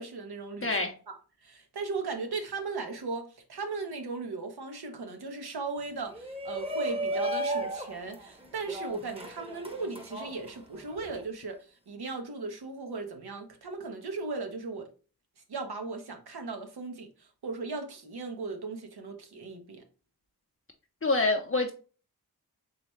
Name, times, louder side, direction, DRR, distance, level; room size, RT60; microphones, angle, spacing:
voice 1, 0.0-0.7 1.1-14.9 15.5-19.8, right 3 dB, 80° right, 1.0 m, -37 dB
voice 2, 0.6-0.9 21.0-21.7, left 3 dB, 35° left, 0.6 m, -26 dB
Shout, 6.1-11.2, right 1 dB, 15° right, 0.8 m, -35 dB
4.0 x 3.2 x 3.0 m
wide cardioid pair, 100°, 38 cm